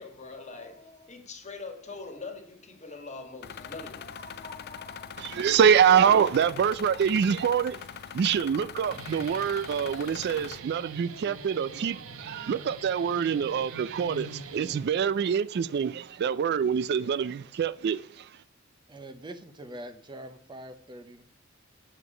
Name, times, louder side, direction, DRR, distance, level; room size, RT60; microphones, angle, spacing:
voice 1, 0.0-5.4, left 3 dB, 35° left, 1.6 m, -43 dB
sound 1, 3.4-10.6, left 8 dB, 50° left, 0.5 m, -42 dB
voice 2, 5.2-7.9 8.1-18.3, right 7 dB, 50° right, 0.3 m, -25 dB
Guitar, 8.7-15.3, right 3 dB, 75° right, 0.9 m, -44 dB
voice 3, 18.9-21.2, right 1 dB, 20° right, 0.7 m, -43 dB
9.0 x 6.6 x 4.9 m
head